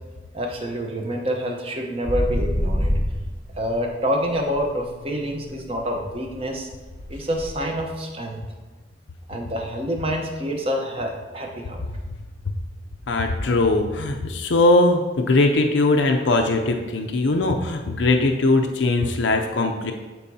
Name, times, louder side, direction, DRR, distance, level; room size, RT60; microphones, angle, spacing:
voice 1, 0.3-2.9 3.6-6.7 7.1-8.4 9.3-11.8, equal, 30° right, 2 dB, 0.9 m, -27 dB
sound 1, 2.0-3.9 4.2-7.4, equal, 55° right, 2.4 m, -27 dB
voice 2, 13.1-19.9, left 2 dB, 80° left, 4 dB, 0.5 m, -20 dB
12.5 x 4.6 x 2.8 m, 1.3 s
head